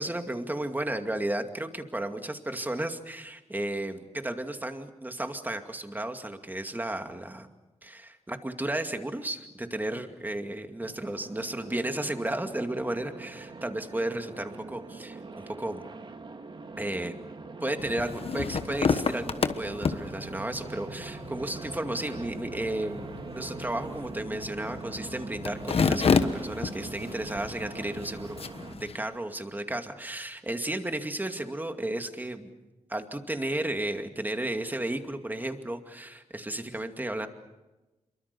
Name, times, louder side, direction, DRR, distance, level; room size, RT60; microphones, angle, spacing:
voice 1, 0.0-7.5 7.8-15.2 15.5-15.8 16.8-17.1 17.6-32.5 32.9-37.3, right 1 dB, 15° right, 6 dB, 2.3 m, -33 dB
sound 1, 10.8-28.7, right 4 dB, 45° right, 1.8 m, -43 dB
sound 2, 17.8-29.0, left 5 dB, 55° left, 1.2 m, -31 dB
26.5 x 24.0 x 6.9 m, 1.1 s
cardioid pair, 85°, 12 cm